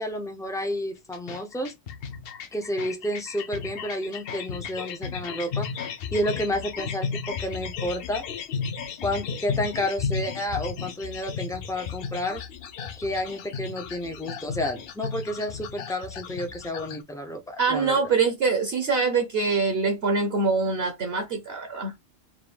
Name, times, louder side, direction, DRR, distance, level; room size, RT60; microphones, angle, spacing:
voice 1, 0.0-1.7 2.5-5.7 6.1-8.2 9.0-12.4 13.0-18.1, left 1 dB, 5° left, 0.3 m, -30 dB
sound 1, 1.1-17.0, left 6 dB, 60° left, 0.6 m, -34 dB
voice 2, 17.6-21.9, right 4 dB, 60° right, 0.9 m, -24 dB
3.7 x 2.2 x 3.3 m
omnidirectional pair, 1.3 m